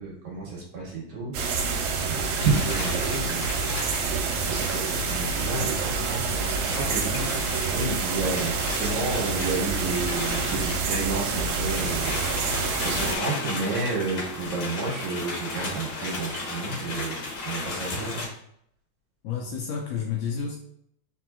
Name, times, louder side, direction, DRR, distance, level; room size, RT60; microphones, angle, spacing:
voice 1, 0.0-1.8 2.0-3.7 4.0-12.2 12.5-18.3, right 3 dB, 65° right, -4 dB, 2.3 m, -31 dB
sound 1, 1.3-13.2, right 4 dB, 90° right, 2.4 m, -27 dB
sound 2, 2.2-18.3, left 3 dB, 55° left, 2.2 m, -35 dB
voice 2, 19.2-20.6, left 7 dB, 80° left, 1 dB, 1.9 m, -30 dB
5.0 x 4.3 x 2.3 m, 0.70 s
omnidirectional pair, 4.0 m